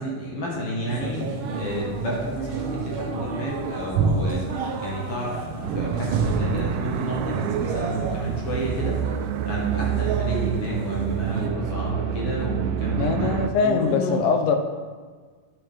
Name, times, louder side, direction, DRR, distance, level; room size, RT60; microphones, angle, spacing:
voice 1, 0.0-13.3 13.6-14.2, equal, 50° left, -3 dB, 2.3 m, -31 dB
sound 1, 0.9-11.5, right 4 dB, 70° right, 1.2 m, -29 dB
sound 2, 5.6-13.5, right 9 dB, 90° right, 1.5 m, -28 dB
voice 2, 12.9-14.6, left 5 dB, 80° left, 5 dB, 2.3 m, -22 dB
9.6 x 9.2 x 3.5 m, 1.5 s
omnidirectional pair, 3.7 m